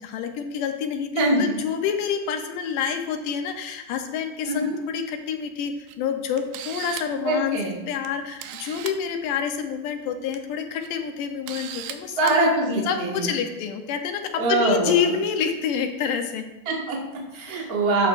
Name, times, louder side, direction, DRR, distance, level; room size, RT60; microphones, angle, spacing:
voice 1, 0.0-7.6 7.9-12.5 12.9-16.5 17.4-17.7, left 7 dB, 75° left, 5 dB, 2.1 m, -28 dB
voice 2, 1.2-1.6 4.5-4.8 7.2-7.8 12.2-13.3 14.3-15.1 16.6-18.1, right 2 dB, 40° right, -2 dB, 1.3 m, -23 dB
Camera, 5.9-6.0 6.4-7.2 8.0-8.1 8.4-9.0 10.1-10.4 10.8-10.9 11.5-11.9 12.3-12.4, right 11 dB, 80° right, 2.2 m, -36 dB
12.5 x 7.2 x 2.5 m, 1.1 s
omnidirectional pair, 4.2 m